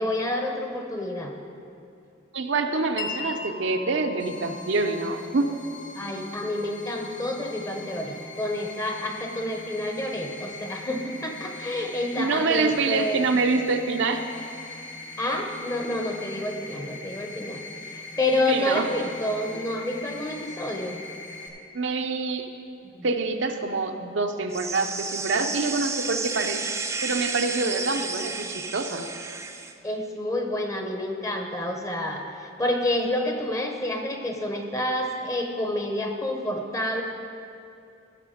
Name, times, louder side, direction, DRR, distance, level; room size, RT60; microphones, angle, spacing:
voice 1, 0.0-1.3 5.9-13.3 15.2-17.6 17.9-21.0 22.9-23.1 29.8-37.0, left 1 dB, 15° left, 3 dB, 0.8 m, -29 dB
voice 2, 2.3-5.5 12.2-14.2 18.5-18.9 21.7-22.5 23.0-26.6 27.0-29.1, right 3 dB, 65° right, 5 dB, 0.6 m, -26 dB
Wind chime, 3.0-10.6, left 4 dB, 50° left, 1.5 m, -42 dB
scaryscape scarydoublethrill, 4.2-21.5, left 3 dB, 70° left, 1.5 m, -41 dB
sound 1, 24.5-29.7, right 4 dB, 15° right, 0.4 m, -32 dB
14.5 x 6.7 x 5.0 m, 2.5 s
head